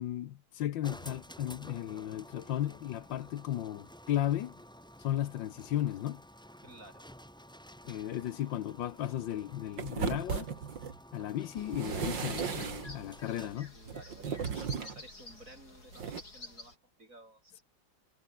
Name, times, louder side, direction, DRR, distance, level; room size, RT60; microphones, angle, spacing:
voice 1, 0.0-4.5 5.0-6.2 7.8-10.5 11.1-13.7, left 12 dB, 75° left, 1.5 m, -35 dB
sound 1, 0.8-13.7, equal, ahead, 3.3 m, -52 dB
voice 2, 6.6-7.0 13.3-17.6, right 1 dB, 40° right, 7.9 m, -54 dB
sound 2, 9.8-11.0 11.6-13.0 13.9-15.0 15.9-16.2, right 6 dB, 70° right, 2.7 m, -36 dB
sound 3, 11.6-16.7, left 2 dB, 50° left, 7.2 m, -50 dB
omnidirectional pair, 2.1 m